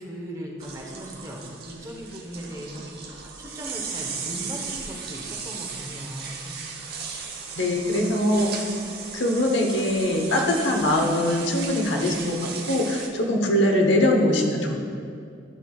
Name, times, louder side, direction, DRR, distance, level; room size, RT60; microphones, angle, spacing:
voice 1, 0.0-6.9 7.7-8.5 9.3-9.6, right 1 dB, 20° right, -1 dB, 1.1 m, -38 dB
sound 1, 0.6-13.1, right 5 dB, 60° right, 1.0 m, -36 dB
voice 2, 7.6-8.5 9.1-12.4 12.7-14.8, left 1 dB, 70° left, 0 dB, 1.1 m, -22 dB
13.5 x 6.0 x 2.4 m, 2.4 s
head